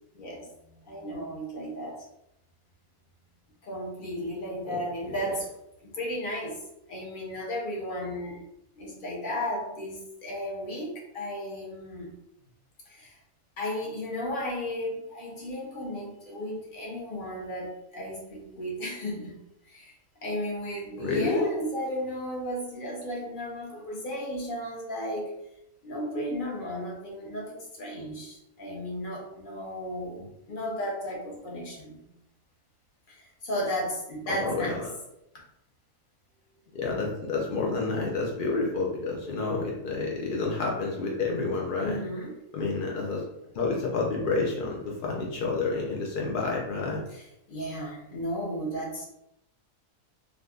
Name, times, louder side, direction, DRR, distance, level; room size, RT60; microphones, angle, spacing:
voice 1, 0.1-2.1 3.6-5.5 5.8-6.6 6.9-8.4 8.7-12.1 12.9-13.2 13.6-19.4 19.6-19.9 20.2-25.3 25.8-30.2 30.5-32.0 33.1-34.8 41.8-42.3 47.1-47.2 47.5-49.1, equal, 45° left, -3 dB, 0.8 m, -34 dB
voice 2, 21.0-21.6 30.2-30.3 34.3-34.8 36.7-42.0 42.5-43.2 43.5-47.0, left 3 dB, 70° left, -2 dB, 0.5 m, -29 dB
3.5 x 2.6 x 2.3 m, 0.83 s
omnidirectional pair, 1.6 m